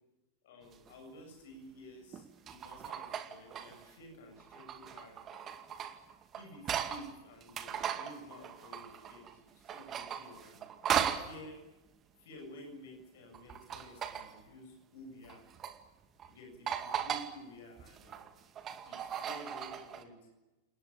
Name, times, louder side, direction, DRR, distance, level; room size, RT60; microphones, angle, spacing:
voice 1, 0.4-5.5 6.3-10.7 11.2-11.6 12.2-15.4 16.3-18.3 18.9-20.3, left 1 dB, 55° left, 3 dB, 7.5 m, -52 dB
sound 1, 0.7-0.9 2.1-3.9 4.4-7.1 7.4-9.3 9.7-11.3 13.3-14.4 15.2-15.8 16.2-16.3 16.7-17.3 17.8-20.0, right 9 dB, 30° right, 2.2 m, -38 dB
28.5 x 19.5 x 8.8 m, 1.1 s
figure-of-eight pair, 90°, 0 cm